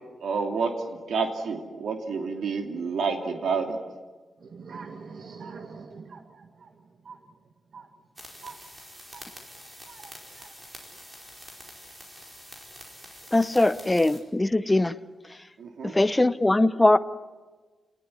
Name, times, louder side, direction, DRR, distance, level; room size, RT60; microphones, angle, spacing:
voice 1, 0.2-3.8 15.6-16.0, right 5 dB, 80° right, 3 dB, 2.8 m, -29 dB
voice 2, 4.4-7.3 7.7-7.9 8.4-8.6 9.1-9.3 9.8-10.6 13.6-13.8 15.9-16.0, right 5 dB, 55° right, 7 dB, 1.6 m, -45 dB
sound 1, 8.2-14.2, equal, 15° right, 4.8 m, -46 dB
voice 3, 13.3-14.9 15.9-17.0, left 2 dB, 10° left, 12 dB, 0.7 m, -21 dB
29.0 x 20.0 x 9.9 m, 1.3 s
wide cardioid pair, 170°, 0 cm